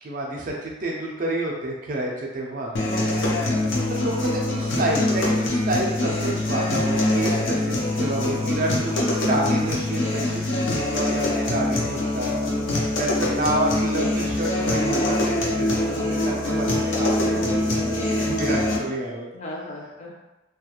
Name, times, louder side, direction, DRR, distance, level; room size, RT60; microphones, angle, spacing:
voice 1, 0.0-2.7 3.9-12.3 13.0-19.3, right 1 dB, 45° right, -2 dB, 0.4 m, -29 dB
sound 1, 2.8-18.8, left 1 dB, 85° left, 0.5 m, -24 dB
voice 2, 2.8-3.4 17.3-18.1 19.3-20.2, left 1 dB, 35° left, -3 dB, 0.5 m, -37 dB
2.4 x 2.2 x 2.8 m, 1.0 s
head